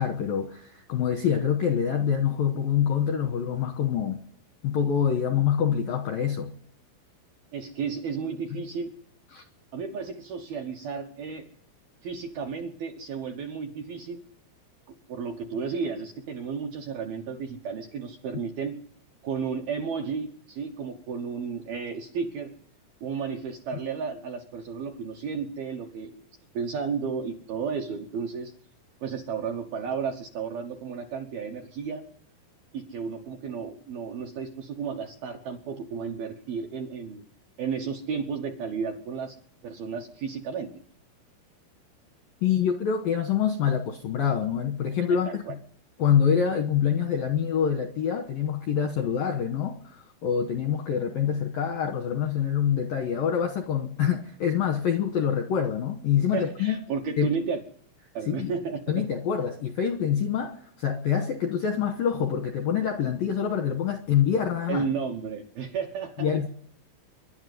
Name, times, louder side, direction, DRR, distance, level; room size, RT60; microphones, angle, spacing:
voice 1, 0.0-4.2 4.6-6.5 9.3-9.4 42.4-45.4 46.0-56.8 57.2-57.3 58.3-58.5 58.9-64.8 66.2-66.5, left 8 dB, 80° left, 2.1 m, -26 dB
voice 2, 7.5-8.9 9.7-11.5 12.0-14.2 15.1-18.8 19.2-22.5 23.0-26.2 26.5-28.5 29.0-32.0 32.7-37.2 37.6-39.4 39.6-40.7 45.1-45.5 56.3-57.6 58.1-59.0 64.7-66.3, right 6 dB, 75° right, 2.3 m, -33 dB
25.0 x 11.5 x 9.4 m
omnidirectional pair, 5.8 m